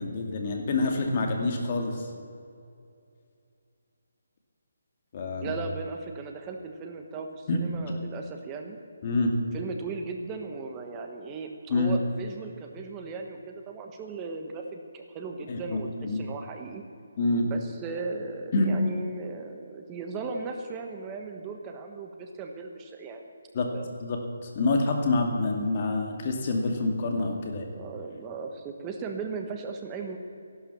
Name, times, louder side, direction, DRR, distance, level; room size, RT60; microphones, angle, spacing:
voice 1, 0.0-2.1 5.1-5.5 7.5-7.7 9.0-9.4 11.7-11.9 15.5-16.2 17.2-17.5 18.5-18.8 23.5-23.7 24.0-27.6, left 2 dB, 35° left, 3 dB, 2.4 m, -27 dB
voice 2, 5.4-8.8 9.5-16.8 17.4-23.3 23.7-23.9 27.5-30.2, right 4 dB, 15° right, 3 dB, 1.3 m, -37 dB
15.0 x 12.0 x 7.1 m, 2.4 s
hypercardioid pair, 165°, 0 cm